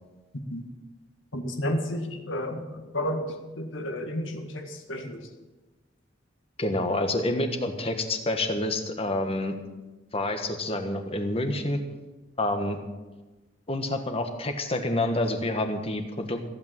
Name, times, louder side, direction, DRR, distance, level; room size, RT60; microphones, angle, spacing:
voice 1, 1.3-5.3, equal, 80° left, 4 dB, 1.9 m, -32 dB
voice 2, 6.6-9.5 10.1-11.8 12.4-12.8 13.7-16.4, left 1 dB, 30° left, 6 dB, 1.5 m, -28 dB
15.5 x 8.4 x 7.5 m, 1.2 s
head